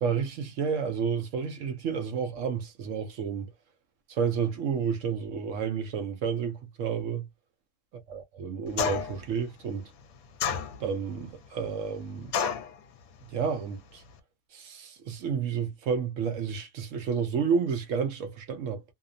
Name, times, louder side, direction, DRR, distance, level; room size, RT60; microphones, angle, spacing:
voice 1, 0.0-3.5 4.1-7.3 8.1-9.9 10.8-12.3 13.3-14.0 14.5-18.8, right 6 dB, 65° right, 0.9 m, -30 dB
sound 1, 8.8-9.2 10.4-11.1 12.3-12.7, left 7 dB, 75° left, 1.0 m, -29 dB
2.8 x 2.0 x 2.4 m
omnidirectional pair, 1.5 m